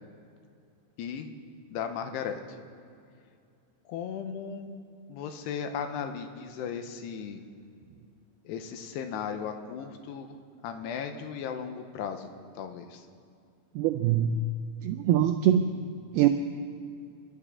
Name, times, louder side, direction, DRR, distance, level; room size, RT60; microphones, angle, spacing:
voice 1, 1.0-1.3 1.7-2.4 3.9-4.8 5.1-7.4 8.5-10.4 10.6-12.3 12.6-13.1, left 7 dB, 80° left, 6 dB, 2.8 m, -36 dB
voice 2, 13.8-14.4 14.8-15.7 16.1-16.3, right 11 dB, 85° right, 7 dB, 2.2 m, -23 dB
27.0 x 12.5 x 3.7 m, 2.4 s
omnidirectional pair, 5.1 m